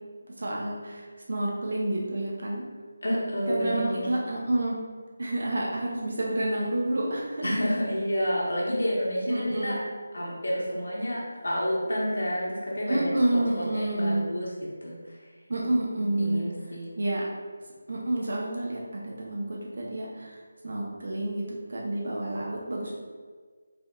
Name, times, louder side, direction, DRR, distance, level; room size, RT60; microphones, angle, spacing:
voice 1, 0.4-2.7 3.5-4.8 5.2-7.5 9.3-9.8 12.9-14.2 15.5-16.4 17.0-17.3 17.9-23.0, right 1 dB, 60° right, -3 dB, 0.7 m, -29 dB
voice 2, 3.0-4.1 7.4-9.8 10.1-13.1 13.7-15.2 16.2-16.8, equal, 85° left, -6 dB, 0.8 m, -29 dB
3.6 x 3.5 x 2.3 m, 1.6 s
figure-of-eight pair, 170°, 0 cm